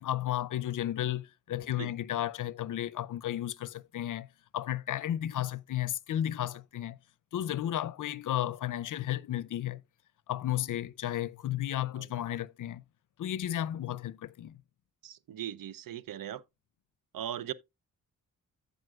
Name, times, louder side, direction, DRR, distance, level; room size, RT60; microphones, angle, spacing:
voice 1, 0.0-4.3 4.5-7.0 7.3-9.8 10.3-12.8 13.2-14.6, left 12 dB, 60° left, 0.6 m, -33 dB
voice 2, 15.0-16.4 17.1-17.5, right 11 dB, 70° right, 0.6 m, -39 dB
14.5 x 5.1 x 2.3 m
cardioid pair, 60°, 35 cm